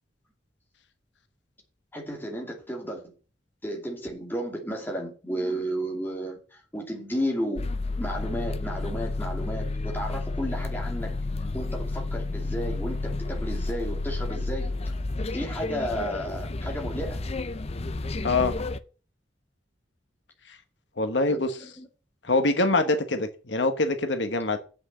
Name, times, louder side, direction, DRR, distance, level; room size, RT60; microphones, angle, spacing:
voice 1, 1.9-3.1 3.6-7.7 8.0-15.0 15.3-17.2 21.3-21.9, equal, 10° left, 2.7 m, -33 dB
sound 1, 7.6-18.8, left 2 dB, 35° left, 0.6 m, -31 dB
voice 2, 18.2-18.6 20.5-20.6 21.0-21.6 22.2-24.6, left 2 dB, 70° left, 1.3 m, -24 dB
7.5 x 6.3 x 7.5 m
head